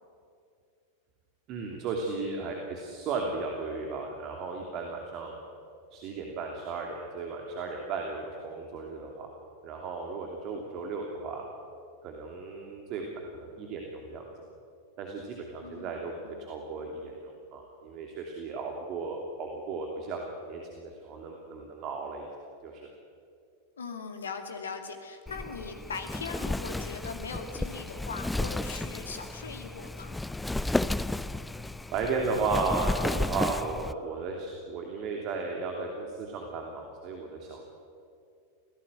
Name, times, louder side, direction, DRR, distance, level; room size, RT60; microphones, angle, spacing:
voice 1, 1.5-5.4 5.9-9.3 9.6-11.5 12.0-14.3 15.0-22.3 22.6-22.9 31.9-37.6, right 4 dB, 40° right, 2 dB, 2.9 m, -35 dB
voice 2, 15.6-16.4 23.8-30.2, left 5 dB, 70° left, 6 dB, 2.5 m, -40 dB
Wind, 25.3-33.9, left 2 dB, 5° left, 0.6 m, -33 dB
26.0 x 17.5 x 8.1 m, 2.4 s
figure-of-eight pair, 90°, 0 cm